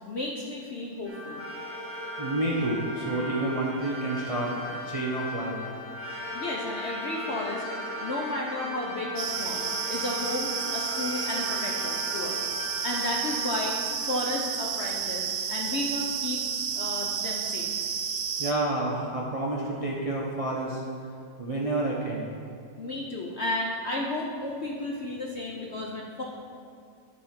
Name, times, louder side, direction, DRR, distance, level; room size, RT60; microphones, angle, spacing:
voice 1, 0.1-1.5 6.3-12.5 12.8-16.4 16.8-17.7 22.8-26.2, left 2 dB, 55° left, -2 dB, 0.7 m, -33 dB
sound 1, 1.0-14.8, left 1 dB, 10° right, 1.3 m, -37 dB
voice 2, 2.2-5.6 18.4-20.8 21.4-22.3, right 2 dB, 35° right, -3 dB, 0.6 m, -29 dB
sound 2, 9.2-18.5, right 7 dB, 80° right, 1.3 m, -31 dB
11.5 x 4.2 x 5.9 m, 2.4 s
omnidirectional pair, 1.9 m